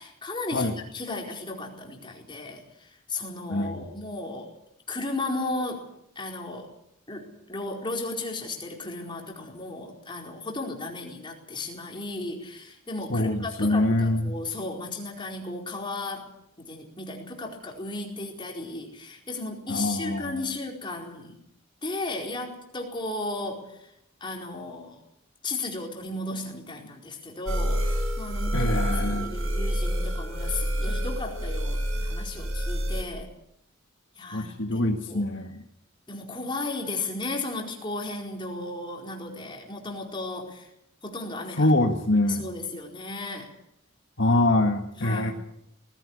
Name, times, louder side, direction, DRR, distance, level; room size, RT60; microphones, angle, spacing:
voice 1, 0.0-4.5 4.9-5.9 6.1-6.7 7.1-16.3 16.6-21.4 21.8-23.9 24.2-25.0 25.4-28.8 29.0-33.3 34.2-34.8 35.1-35.3 36.1-40.7 41.0-41.7 42.2-43.5 45.0-45.3, left 2 dB, 25° left, 1 dB, 4.5 m, -35 dB
voice 2, 3.5-3.9 13.1-14.3 19.7-20.5 28.5-29.3 34.3-35.6 41.6-42.5 44.2-45.3, left 1 dB, 60° left, 4 dB, 1.7 m, -24 dB
sound 1, 27.5-33.0, equal, 85° right, 5.1 m, -28 dB
19.5 x 16.0 x 9.9 m, 0.79 s
head